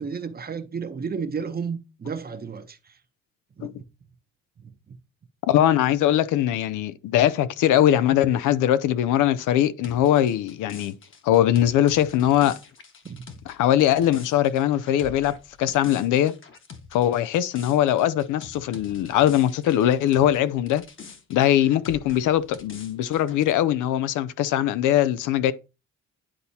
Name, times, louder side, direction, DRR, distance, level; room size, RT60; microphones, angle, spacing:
voice 1, 0.0-3.0 3.6-3.7 4.6-5.0 13.0-13.3, right 6 dB, 30° right, 0.8 m, -33 dB
voice 2, 5.5-10.9 11.2-12.6 13.5-16.4 16.9-20.8 21.3-25.5, left 11 dB, 85° left, 0.6 m, -21 dB
sound 1, 9.8-20.4 20.7-23.5, left 5 dB, 40° left, 1.2 m, -45 dB
10.0 x 4.0 x 2.8 m
cardioid pair, 90°, 30 cm